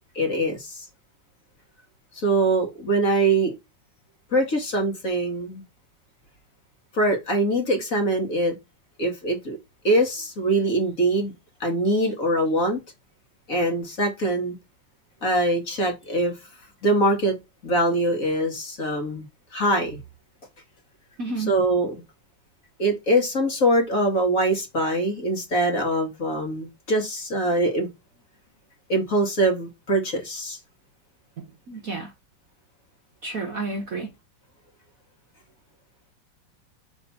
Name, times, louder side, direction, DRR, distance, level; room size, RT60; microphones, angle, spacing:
voice 1, 0.2-0.9 2.1-3.5 4.3-5.6 6.9-8.6 9.0-9.6 9.8-11.3 11.6-12.8 13.5-14.6 15.2-16.3 16.8-17.4 17.6-20.0 21.5-21.9 22.8-27.9 28.9-30.6, right 1 dB, 40° left, 2.0 m, -23 dB
voice 2, 21.2-21.6 31.4-32.1 33.2-34.1, right 3 dB, 50° right, 1.3 m, -31 dB
5.6 x 4.3 x 5.8 m
omnidirectional pair, 2.4 m